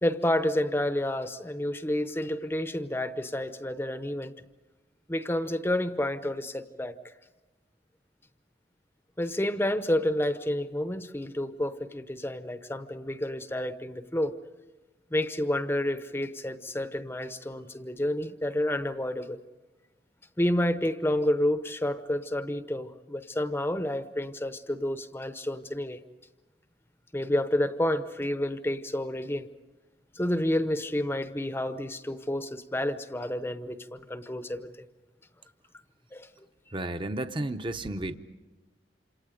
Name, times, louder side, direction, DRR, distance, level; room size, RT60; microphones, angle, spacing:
voice 1, 0.0-4.3 5.1-7.1 9.2-14.3 15.1-19.4 20.4-26.0 27.1-29.5 30.1-34.7 36.1-36.3, left 1 dB, 15° left, 10 dB, 0.7 m, -29 dB
voice 2, 36.7-38.2, right 1 dB, 25° right, 9 dB, 0.8 m, -32 dB
28.0 x 27.0 x 5.1 m, 1.1 s
head